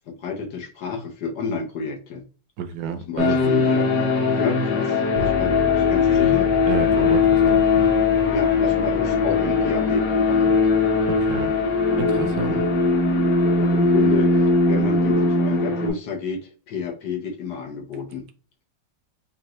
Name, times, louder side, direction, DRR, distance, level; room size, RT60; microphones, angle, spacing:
voice 1, 0.1-2.2 3.1-3.9 4.3-6.5 6.9-7.1 8.3-10.6 12.5-12.6 13.6-18.3, left 5 dB, 90° left, 1.7 m, -30 dB
voice 2, 2.6-3.4 6.7-7.8 11.1-11.5 12.0-12.6, right 7 dB, 70° right, 1.2 m, -29 dB
sound 1, 3.2-15.9, left 4 dB, 65° left, 1.5 m, -20 dB
sound 2, 5.2-15.3, left 1 dB, 90° right, 1.5 m, -36 dB
5.4 x 2.5 x 3.0 m
omnidirectional pair, 1.8 m